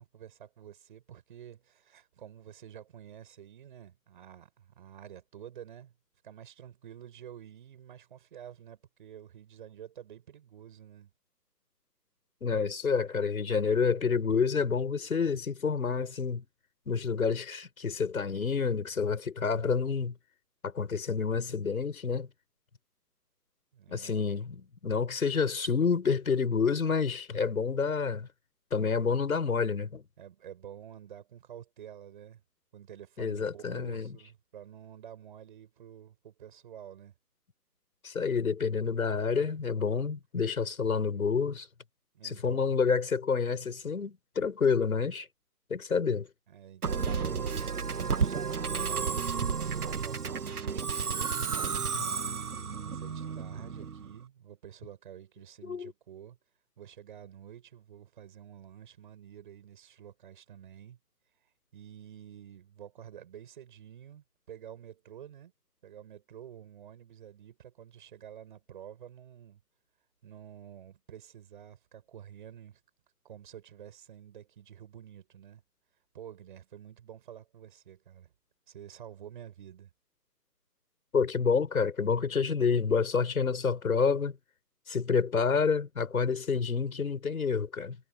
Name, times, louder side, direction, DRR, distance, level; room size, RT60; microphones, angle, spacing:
voice 1, 0.0-5.9 6.2-11.1 23.7-24.2 30.2-32.4 32.7-37.1 42.1-42.8 46.5-51.3 52.0-52.4 52.8-56.4 56.8-61.0 61.7-65.5 65.8-69.6 70.2-72.8 73.2-75.6 76.1-78.3 78.7-79.9, right 9 dB, 30° right, 7.8 m, -49 dB
voice 2, 12.4-16.4 16.9-20.1 20.6-22.3 23.9-28.3 28.7-30.0 33.2-34.1 38.0-41.7 42.2-45.3 45.7-46.3 51.9-52.0 55.6-55.9 81.1-84.4 84.9-88.0, left 5 dB, 55° left, 6.8 m, -28 dB
Musical instrument, 46.8-54.2, right 6 dB, 60° right, 1.8 m, -32 dB
hypercardioid pair, 165°, 50 cm